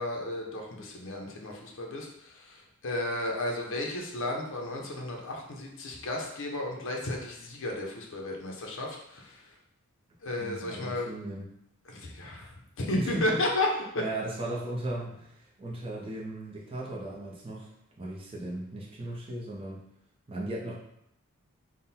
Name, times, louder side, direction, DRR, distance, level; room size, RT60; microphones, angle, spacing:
voice 1, 0.0-9.4 10.2-11.1 11.9-12.5 12.8-13.7, left 1 dB, 65° left, 0 dB, 0.7 m, -33 dB
voice 2, 10.4-11.5 12.9-13.4 14.0-15.3 15.6-17.7 18.0-19.9 20.3-20.7, right 1 dB, 25° right, -4 dB, 0.6 m, -36 dB
3.7 x 2.2 x 4.1 m, 0.76 s
head